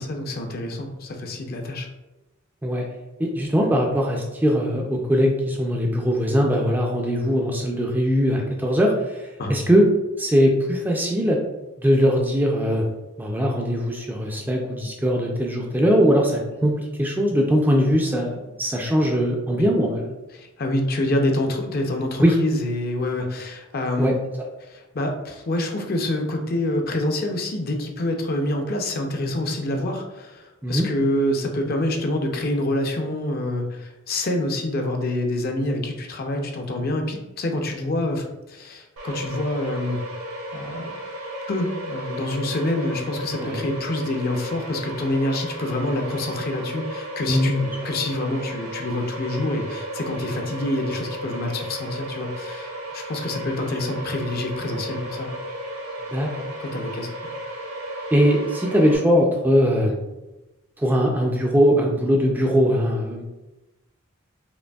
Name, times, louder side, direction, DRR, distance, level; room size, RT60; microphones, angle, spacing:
voice 1, 0.0-1.9 3.6-3.7 9.4-9.5 19.6-19.7 20.3-24.1 24.6-40.0 40.5-40.9 41.5-47.5 47.8-55.3 56.6-57.3, left 1 dB, 45° left, 3 dB, 0.5 m, -26 dB
voice 2, 3.2-9.9 10.2-11.4 11.8-12.8 13.2-16.7 17.0-20.1 22.2-22.3 24.0-24.1 30.6-30.9 43.4-43.6 47.3-47.6 56.1-56.3 58.1-60.0 60.8-63.2, equal, 10° right, 0 dB, 0.3 m, -20 dB
sound 1, 39.0-59.0, right 1 dB, 80° right, 1.2 m, -34 dB
5.1 x 2.6 x 2.3 m, 1.0 s
head